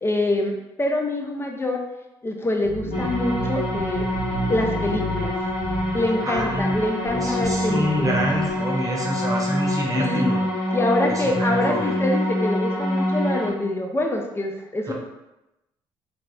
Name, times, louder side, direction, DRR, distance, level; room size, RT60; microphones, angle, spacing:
voice 1, 0.0-1.8 2.2-4.1 4.5-5.4 5.9-8.2 9.9-10.3 10.7-14.9, left 1 dB, 20° left, 2 dB, 0.5 m, -25 dB
sound 1, 2.6-8.6, right 1 dB, 90° right, 0.5 m, -32 dB
sound 2, 2.9-13.5, left 1 dB, 65° left, 1.0 m, -26 dB
voice 2, 6.2-6.8 7.1-10.4 11.1-11.9 14.9-15.0, right 1 dB, 30° right, -2 dB, 0.9 m, -27 dB
3.4 x 2.0 x 2.5 m, 0.95 s
hypercardioid pair, 50°, 12 cm